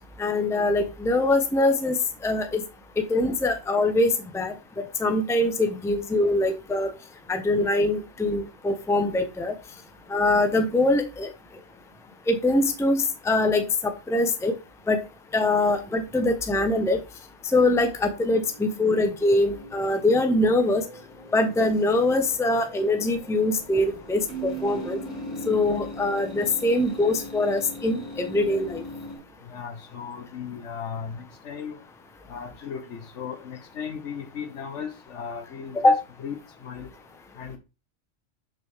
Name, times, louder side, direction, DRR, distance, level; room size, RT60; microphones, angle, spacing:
voice 1, 0.2-2.0 2.2-2.6 3.1-4.5 5.0-6.9 7.3-9.5 10.1-11.3 12.3-14.5 14.9-15.0 15.3-17.0 17.5-20.8 21.3-25.0 25.5-28.8 35.8-36.0, left 2 dB, 5° left, 0.7 m, -23 dB
sound 1, 17.5-29.2, left 2 dB, 35° left, 2.6 m, -41 dB
Keyboard (musical), 24.3-26.1, right 11 dB, 65° right, 0.9 m, -38 dB
voice 2, 29.5-31.8 32.3-36.9 37.4-37.6, left 7 dB, 70° left, 1.2 m, -36 dB
6.5 x 6.0 x 3.4 m
omnidirectional pair, 1.3 m